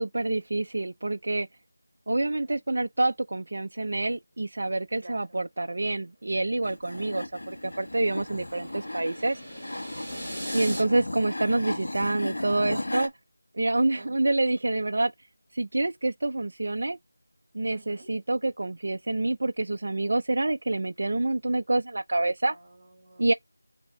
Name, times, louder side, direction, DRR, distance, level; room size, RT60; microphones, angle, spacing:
voice 1, 0.0-1.5 2.1-9.4 10.5-13.1 13.5-15.1 15.5-17.0 17.5-22.5 23.2-23.3, right 2 dB, 50° right, 0.3 m, -27 dB
voice 2, 2.1-2.6 5.0-5.5 7.0-7.2 10.1-10.6 11.5-11.7 13.9-14.3 17.7-18.1 22.4-23.3, right 2 dB, 25° right, 1.3 m, -50 dB
sound 1, 6.5-10.8, equal, 10° left, 2.2 m, -41 dB
sound 2, 6.6-13.1, left 1 dB, 65° left, 1.1 m, -35 dB
5.2 x 2.6 x 3.2 m
figure-of-eight pair, 175°, 0 cm